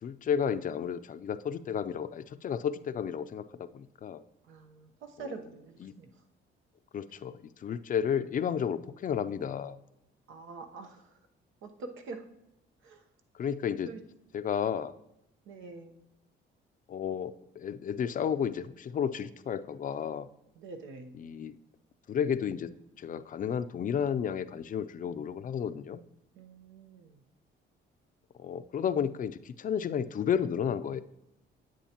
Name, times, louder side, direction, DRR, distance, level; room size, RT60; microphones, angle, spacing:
voice 1, 0.0-4.2 5.2-5.4 5.8-5.9 6.9-9.8 13.3-13.9 14.3-14.9 16.9-20.3 21.1-21.6 22.1-22.7 23.0-26.0 28.4-31.0, left 8 dB, 45° left, 12 dB, 0.4 m, -32 dB
voice 2, 4.5-6.1 10.3-11.0 11.6-12.2 12.8-13.0 13.9-14.0 15.5-16.0 20.6-21.2 26.4-27.2, right 3 dB, 85° right, 5 dB, 0.9 m, -45 dB
10.0 x 7.7 x 2.9 m, 0.88 s
cardioid pair, 90°, 20 cm